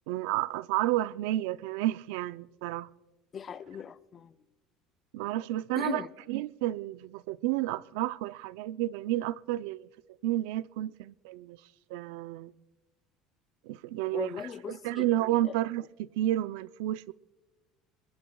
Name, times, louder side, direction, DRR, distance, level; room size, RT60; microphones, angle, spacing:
voice 1, 0.1-2.9 5.1-6.0 6.3-9.9 10.2-11.6 11.9-12.5 13.6-14.3 14.7-17.1, right 15 dB, 85° right, 0.4 m, -31 dB
voice 2, 3.3-4.3 5.8-6.1 14.0-15.0 15.4-15.5, left 7 dB, 25° left, 0.4 m, -38 dB
27.0 x 21.0 x 2.3 m
cardioid pair, 165°, 0 cm